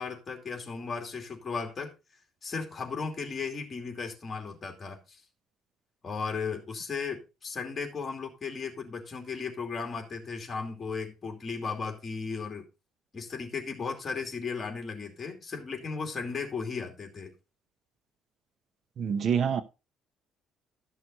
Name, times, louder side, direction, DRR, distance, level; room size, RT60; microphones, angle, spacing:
voice 1, 0.0-1.9 2.4-5.2 6.0-12.7 13.1-17.3, left 5 dB, 30° left, 2.6 m, -36 dB
voice 2, 19.0-19.6, right 7 dB, 50° right, 0.8 m, -26 dB
13.0 x 6.2 x 4.0 m
cardioid pair, 140°, 0 cm